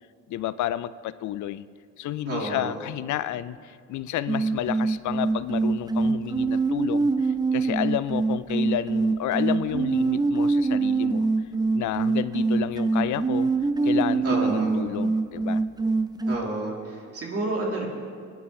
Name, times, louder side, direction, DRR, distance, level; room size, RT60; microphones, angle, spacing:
voice 1, 0.3-1.7 2.0-11.3 11.7-13.5 13.8-15.6, left 12 dB, 75° left, 15 dB, 0.6 m, -31 dB
voice 2, 2.3-2.7 14.2-14.8 16.3-17.9, right 2 dB, 50° right, -2 dB, 3.2 m, -30 dB
sound 1, 4.3-16.4, right 3 dB, 15° right, 0.5 m, -24 dB
21.5 x 10.5 x 3.2 m, 2.2 s
cardioid pair, 90°, 30 cm